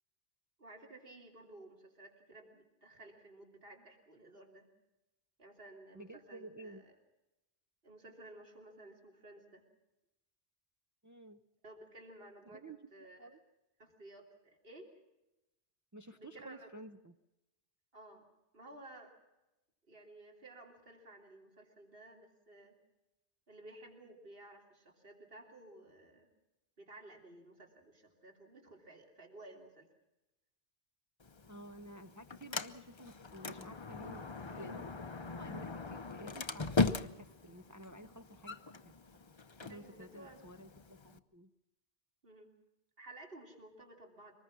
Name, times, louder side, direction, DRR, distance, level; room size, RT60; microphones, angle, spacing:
voice 1, 0.6-4.7 5.4-6.9 7.8-9.6 11.6-12.6 12.9-13.4 13.8-14.9 16.1-16.7 17.9-18.2 18.5-19.1 19.9-22.7 23.5-26.3 26.8-29.9 39.7-40.4 42.2-42.5 43.0-44.3, right 2 dB, 60° right, 2 dB, 3.1 m, -55 dB
voice 2, 5.9-6.8 11.0-11.4 12.5-12.8 13.2-13.4 15.9-17.1 31.5-34.9 35.3-39.2 39.6-41.5, right 1 dB, 20° right, 7 dB, 0.6 m, -52 dB
Sliding door, 31.2-41.2, left 3 dB, 30° left, 0.7 m, -40 dB
24.0 x 20.0 x 6.1 m, 0.97 s
omnidirectional pair, 1.1 m